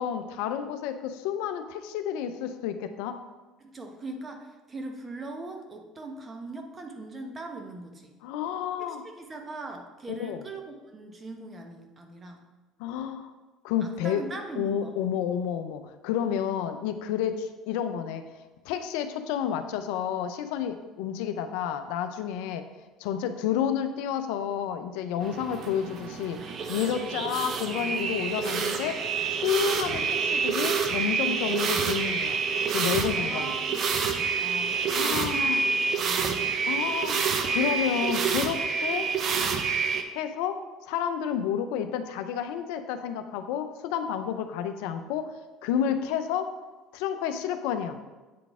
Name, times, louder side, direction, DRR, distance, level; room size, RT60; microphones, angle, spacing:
voice 1, 0.0-3.2 8.2-9.0 10.1-10.4 12.8-13.3 13.6-14.2 14.6-18.2 18.6-22.6 23.0-26.4 26.7-29.0 29.3-32.4 32.7-33.6 34.9-35.6 36.7-37.2 37.5-39.1 40.1-40.6 40.9-45.3 45.6-46.5 46.9-48.0, left 9 dB, 75° left, 8 dB, 0.4 m, -30 dB
voice 2, 3.6-8.2 8.8-12.4 13.8-15.0 33.2-35.5 35.9-36.5, right 2 dB, 30° right, 4 dB, 1.0 m, -41 dB
sound 1, 25.2-40.0, right 5 dB, 50° right, 0.6 m, -28 dB
8.4 x 3.9 x 3.6 m, 1.2 s
hypercardioid pair, 75°, 0 cm